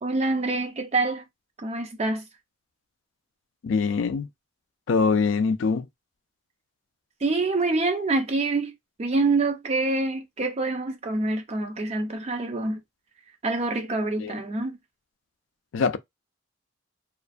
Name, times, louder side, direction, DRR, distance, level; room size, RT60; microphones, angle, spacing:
voice 1, 0.0-1.2 1.6-2.2 7.2-8.7 9.0-12.8 13.4-14.8, right 3 dB, 30° right, 0.4 m, -26 dB
voice 2, 3.6-4.3 4.9-5.9 14.2-14.4 15.7-16.0, left 5 dB, 75° left, 0.4 m, -23 dB
2.5 x 2.2 x 2.5 m
head